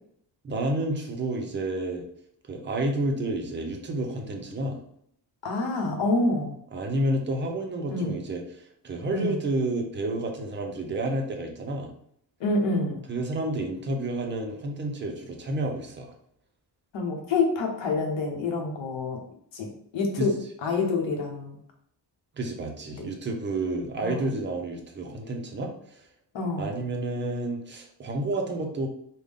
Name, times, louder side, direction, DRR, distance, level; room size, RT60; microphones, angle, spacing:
voice 1, 0.4-2.0 2.5-4.8 6.7-8.4 8.8-11.9 13.1-16.1 20.2-20.3 22.4-25.7 26.6-28.9, right 2 dB, 25° right, 2 dB, 0.5 m, -30 dB
voice 2, 5.4-6.6 7.9-8.1 9.1-9.4 12.4-13.0 16.9-19.2 19.5-19.7 19.9-20.4 20.6-21.6 22.9-23.0 24.0-24.3 26.3-26.7, left 3 dB, 75° left, 1 dB, 1.0 m, -27 dB
3.6 x 2.2 x 3.5 m, 0.67 s
wide cardioid pair, 180°, 46 cm